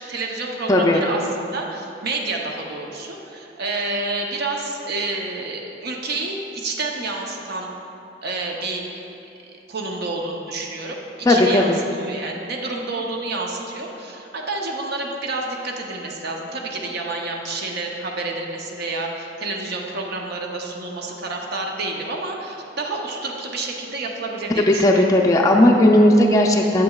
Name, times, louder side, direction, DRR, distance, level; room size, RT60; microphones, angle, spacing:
voice 1, 0.0-7.7 8.2-8.9 9.7-11.7 12.0-25.0, right 2 dB, 60° right, 0 dB, 0.7 m, -29 dB
voice 2, 0.7-1.0 11.3-11.8 24.7-26.8, left 1 dB, 20° left, 0 dB, 0.4 m, -15 dB
7.6 x 7.4 x 2.3 m, 2.8 s
head